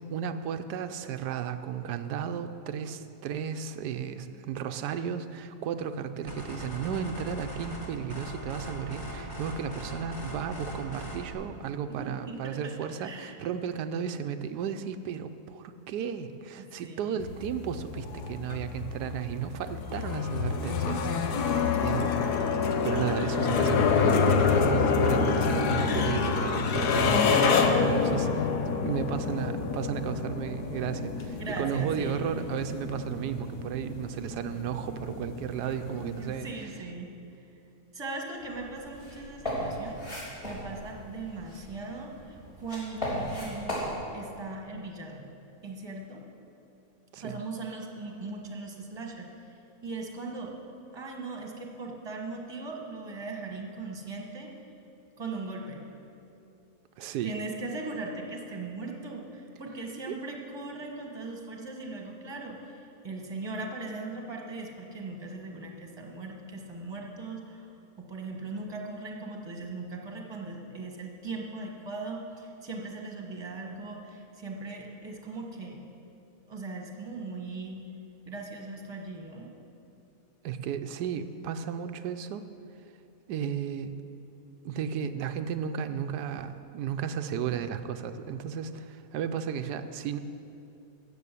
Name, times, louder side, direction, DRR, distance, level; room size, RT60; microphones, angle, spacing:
voice 1, 0.1-22.3 22.8-28.5 28.8-36.5 47.1-47.4 57.0-57.4 60.1-60.2 80.4-82.5 83.3-84.0 84.6-90.2, right 8 dB, 90° right, 9 dB, 1.2 m, -34 dB
sound 1, 6.3-11.3, equal, 15° left, 2.2 m, -40 dB
voice 2, 12.0-13.4 16.6-17.1 31.4-32.2 35.9-37.1 37.9-40.0 40.4-45.3 45.6-46.2 47.1-49.3 49.8-50.6 50.9-54.5 55.2-55.8 57.2-67.6 68.0-75.9 76.5-77.9 78.3-79.5, right 3 dB, 15° right, 1 dB, 1.4 m, -39 dB
sound 2, 17.2-36.5, left 5 dB, 80° left, 1.4 m, -27 dB
sound 3, 38.4-44.0, equal, 35° left, 4.0 m, -37 dB
14.0 x 6.9 x 8.4 m, 2.8 s
omnidirectional pair, 1.7 m